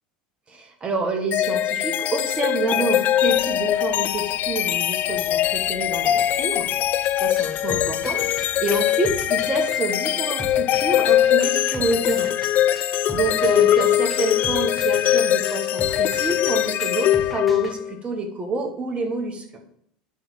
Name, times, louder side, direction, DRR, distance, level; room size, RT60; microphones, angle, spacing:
voice 1, 0.5-12.3 12.7-19.4, right 2 dB, 30° right, 3 dB, 1.6 m, -28 dB
sound 1, 1.3-18.0, left 12 dB, 45° left, 0.4 m, -22 dB
sound 2, 3.2-8.8, right 3 dB, 85° right, 0.9 m, -47 dB
sound 3, 7.0-17.7, equal, ahead, 1.5 m, -39 dB
9.8 x 3.6 x 4.2 m, 0.71 s
hypercardioid pair, 85°, 4 cm